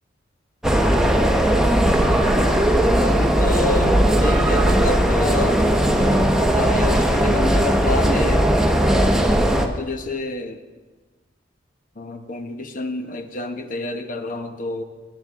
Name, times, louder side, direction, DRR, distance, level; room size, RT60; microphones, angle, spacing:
sound 1, 0.6-9.7, right 1 dB, 5° right, 0.8 m, -18 dB
Drum, 1.9-3.3 3.9-5.2 5.9-7.4, right 2 dB, 35° right, 0.6 m, -34 dB
voice 1, 3.0-5.6 6.5-8.5 9.5-10.6 12.0-14.8, left 2 dB, 45° left, 7 dB, 1.0 m, -28 dB
21.0 x 10.5 x 3.7 m, 1.3 s
head